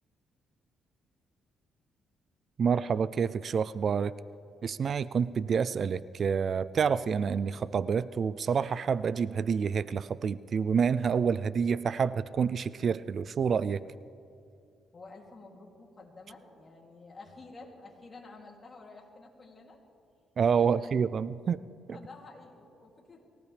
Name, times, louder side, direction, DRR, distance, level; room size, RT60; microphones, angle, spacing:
voice 1, 2.6-4.2 4.6-13.8 20.4-21.6, right 6 dB, 50° right, 17 dB, 0.3 m, -28 dB
voice 2, 14.9-19.8 20.6-21.0 21.9-23.2, left 3 dB, 30° left, -1 dB, 2.9 m, -50 dB
23.0 x 16.5 x 3.4 m, 2.5 s
cardioid pair, 90°, 0 cm